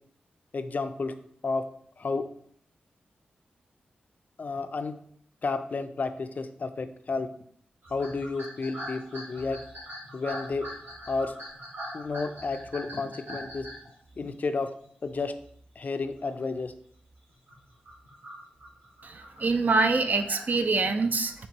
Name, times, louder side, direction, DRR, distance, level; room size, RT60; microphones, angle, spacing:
voice 1, 0.5-1.1 1.4-1.6 2.0-2.3 4.4-4.9 5.4-7.3 7.9-9.6 10.1-10.6 11.1-11.3 11.9-13.7 14.2-14.7 15.0-15.3 15.8-16.7, left 4 dB, 50° left, 10 dB, 0.3 m, -31 dB
sound 1, 7.8-14.4 15.0-15.5 15.8-16.1 16.5-16.7 17.3-20.5, equal, 80° right, 1.8 m, -42 dB
voice 2, 19.0-21.3, right 3 dB, 55° right, 8 dB, 0.4 m, -25 dB
4.4 x 3.3 x 2.9 m, 0.63 s
cardioid pair, 55°, 3 cm